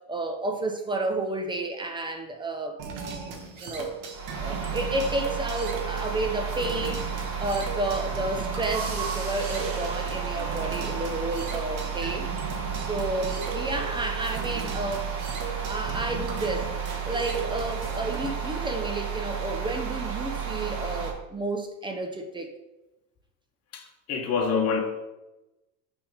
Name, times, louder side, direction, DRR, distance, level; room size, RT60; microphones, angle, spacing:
voice 1, 0.1-3.0 3.6-4.0 4.4-12.3 12.7-15.1 15.4-16.7 17.0-22.5, right 2 dB, 10° right, 5 dB, 0.7 m, -31 dB
sound 1, 2.8-18.3, right 4 dB, 55° right, 1.3 m, -37 dB
sound 2, 4.1-21.1, right 6 dB, 35° right, 1.5 m, -32 dB
voice 2, 23.7-24.8, left 5 dB, 40° left, 2 dB, 1.3 m, -26 dB
6.0 x 3.6 x 5.0 m, 1.0 s
supercardioid pair, 105°, 39 cm